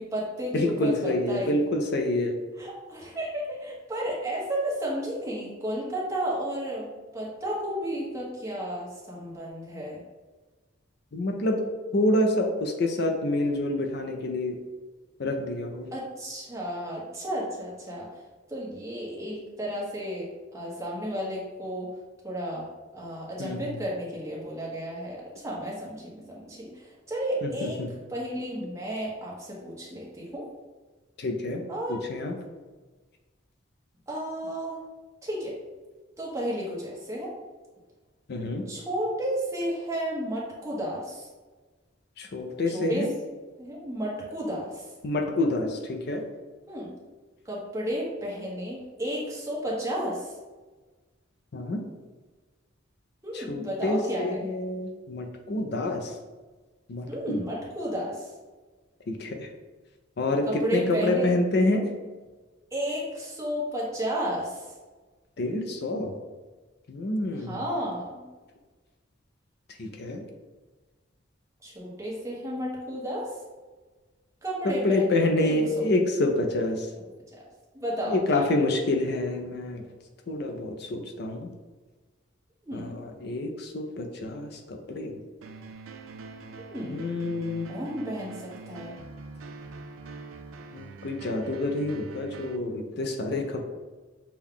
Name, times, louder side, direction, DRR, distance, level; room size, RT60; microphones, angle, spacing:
voice 1, 0.0-1.6 2.6-10.0 15.9-18.2 18.5-22.0 22.2-22.6 22.9-27.8 28.1-30.4 31.7-32.0 34.1-34.8 35.2-35.5 36.2-37.3 38.7-41.3 42.7-43.1 43.6-44.9 46.7-46.9 47.4-50.3 53.2-54.5 57.1-58.3 60.5-61.3 62.7-64.7 67.3-68.2 71.6-73.3 74.4-75.9 77.7-78.5 82.6-82.9 86.7-87.0 87.7-89.0, equal, 15° right, -5 dB, 1.1 m, -32 dB
voice 2, 0.5-2.4 11.1-11.6 11.9-14.5 15.2-15.9 23.4-23.8 27.4-27.9 31.2-31.6 31.9-32.3 38.3-38.6 42.2-43.1 45.0-46.2 51.5-51.8 53.3-56.2 56.9-57.4 59.1-59.5 60.2-61.8 65.4-66.1 66.9-67.6 69.8-70.2 74.8-76.9 78.1-79.8 80.3-81.5 82.7-85.2 86.8-87.7 90.7-93.6, left 2 dB, 55° left, 4 dB, 0.5 m, -27 dB
sound 1, 85.4-92.6, right 4 dB, 90° right, 0.4 m, -44 dB
6.3 x 2.3 x 3.6 m, 1.3 s
head